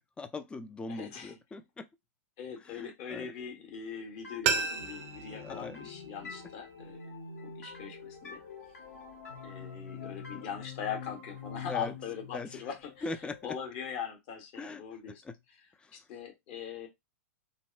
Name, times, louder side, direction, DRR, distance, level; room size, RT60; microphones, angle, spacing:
voice 1, 0.2-1.9 2.7-3.3 5.3-5.9 11.7-11.9 12.3-12.6 13.0-13.6 14.6-15.3 15.8-16.0, left 3 dB, 10° left, 0.3 m, -41 dB
voice 2, 0.9-1.4 2.4-7.0 7.4-8.4 9.4-15.2 15.9-16.9, left 7 dB, 50° left, 1.2 m, -41 dB
sound 1, 4.2-13.8, left 6 dB, 75° left, 1.4 m, -46 dB
sound 2, 4.4-7.2 7.5-7.6, right 6 dB, 50° right, 0.5 m, -35 dB
3.9 x 2.1 x 2.4 m
hypercardioid pair, 110°, 8 cm